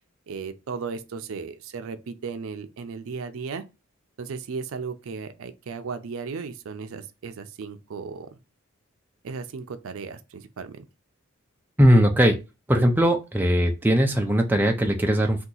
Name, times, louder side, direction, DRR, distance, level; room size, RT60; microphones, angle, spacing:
voice 1, 0.3-3.6 4.2-8.3 9.2-10.8, right 5 dB, 80° right, 0.4 m, -35 dB
voice 2, 11.8-12.4 12.7-15.4, equal, 10° right, 0.4 m, -19 dB
2.8 x 2.3 x 3.7 m
head